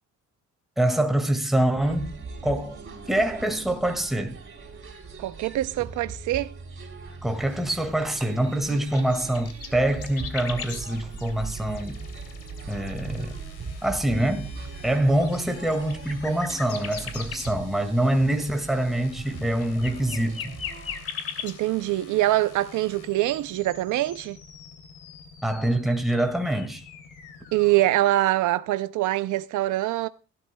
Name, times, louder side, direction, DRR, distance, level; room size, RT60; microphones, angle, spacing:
voice 1, 0.8-2.1 2.4-2.8 3.1-4.4 7.2-12.0 12.7-13.3 13.8-14.5 14.8-20.5 25.4-26.8, right 1 dB, ahead, 1.9 m, -25 dB
sound 1, 1.8-21.0, right 4 dB, 45° right, 4.0 m, -40 dB
voice 2, 5.2-6.5 8.7-8.8 21.4-24.4 27.5-30.1, right 15 dB, 75° right, 0.6 m, -24 dB
sound 2, 7.4-22.1 22.4-23.3, left 7 dB, 50° left, 2.7 m, -40 dB
sound 3, 10.4-27.9, left 6 dB, 90° left, 2.8 m, -48 dB
17.0 x 12.0 x 2.2 m
cardioid pair, 90°, 30 cm